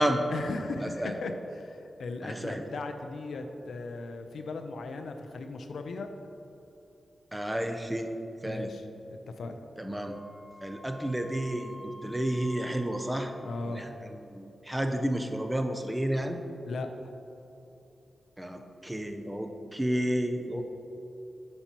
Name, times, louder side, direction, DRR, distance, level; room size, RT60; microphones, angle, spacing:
voice 1, 0.0-6.1 8.4-8.8 9.1-9.6 13.4-13.9 16.6-17.1 20.5-20.6, left 3 dB, 85° left, 6 dB, 0.5 m, -37 dB
voice 2, 0.8-1.2 2.2-2.6 7.3-8.1 8.4-8.7 9.8-10.2 10.6-13.3 13.7-16.4 18.4-20.6, right 1 dB, 10° right, 5 dB, 0.5 m, -31 dB
Wind instrument woodwind instrument, 10.1-14.0, left 1 dB, 45° left, 0.8 m, -49 dB
8.9 x 5.4 x 2.9 m, 2.9 s
wide cardioid pair, 115°, 0 cm